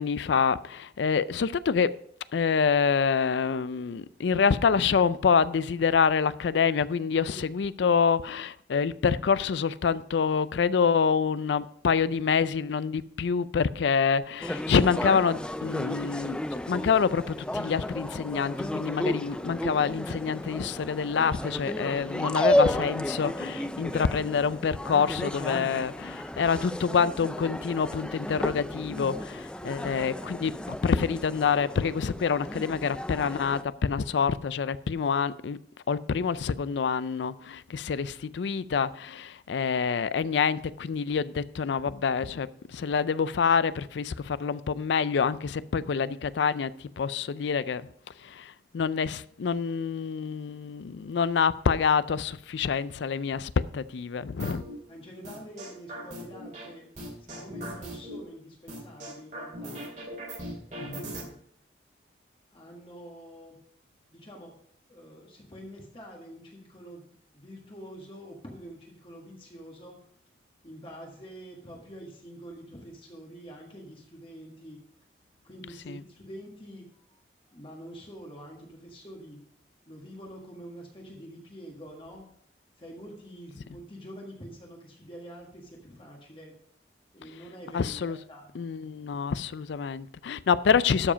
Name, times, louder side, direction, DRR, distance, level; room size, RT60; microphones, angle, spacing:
voice 1, 0.0-2.0 2.3-16.4 16.7-35.6 35.9-47.9 48.2-54.7 60.8-61.1 75.9-76.0 87.7-88.2 88.5-91.1, left 6 dB, 75° left, 0.4 m, -26 dB
sound 1, 14.4-33.6, left 1 dB, 5° left, 0.3 m, -33 dB
sound 2, 54.4-54.7 55.2-56.7 57.0-58.2 58.7-61.2, right 1 dB, 45° right, 2.3 m, -39 dB
voice 2, 54.9-56.9 57.2-59.9 60.7-61.4 62.5-63.6 64.1-64.5 64.9-70.0 70.6-74.8 75.4-77.2 77.5-79.4 79.9-82.2 82.8-86.5 87.1-88.5, equal, 30° left, 1.6 m, -46 dB
12.5 x 5.0 x 5.0 m
head